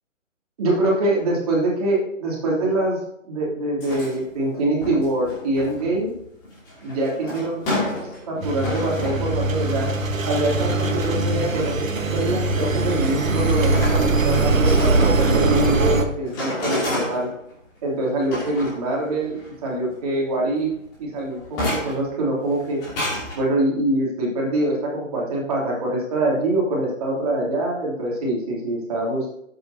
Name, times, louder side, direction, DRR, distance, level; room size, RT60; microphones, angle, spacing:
voice 1, 0.6-3.0 3.2-6.1 6.8-7.6 8.0-9.9 10.3-11.7 12.1-17.3 17.8-20.7 21.0-22.8 23.3-29.3, right 1 dB, 30° right, -3 dB, 2.9 m, -24 dB
sound 1, 3.8-4.3 4.8-9.9 10.5-11.6 12.2-12.3 12.8-17.5 18.0-19.6 19.9-20.0 20.3-22.1 22.5-23.3, left 1 dB, 15° left, 2.7 m, -31 dB
Engine, 8.4-16.0, right 3 dB, 80° right, 1.4 m, -21 dB
12.5 x 8.2 x 2.8 m, 0.75 s
figure-of-eight pair, 155°, 40 cm